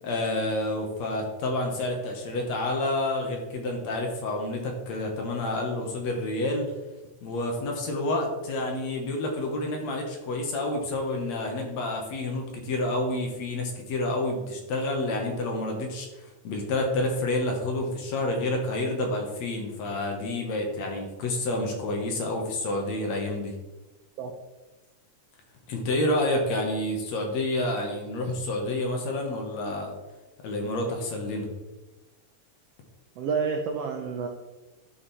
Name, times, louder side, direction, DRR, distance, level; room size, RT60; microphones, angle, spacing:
voice 1, 0.0-6.7 7.2-16.1 16.4-23.6 25.7-29.9 30.4-31.5, left 2 dB, 65° left, 2 dB, 2.3 m, -29 dB
voice 2, 33.2-34.3, right 5 dB, 80° right, 4 dB, 1.4 m, -29 dB
11.5 x 5.1 x 4.2 m, 1.1 s
omnidirectional pair, 3.7 m